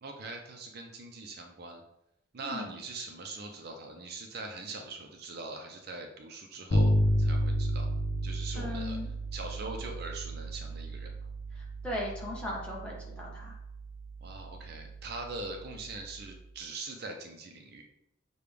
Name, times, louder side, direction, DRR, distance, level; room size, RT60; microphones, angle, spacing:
voice 1, 0.0-1.8 2.3-7.9 8.2-9.0 9.3-11.1 14.2-17.8, right 3 dB, 50° right, 3 dB, 0.5 m, -42 dB
voice 2, 2.4-2.7 8.6-9.1 11.8-13.5, left 1 dB, 5° left, -5 dB, 1.1 m, -37 dB
Bass guitar, 6.7-16.4, equal, 70° left, 0.6 m, -32 dB
6.7 x 2.3 x 3.3 m, 0.82 s
head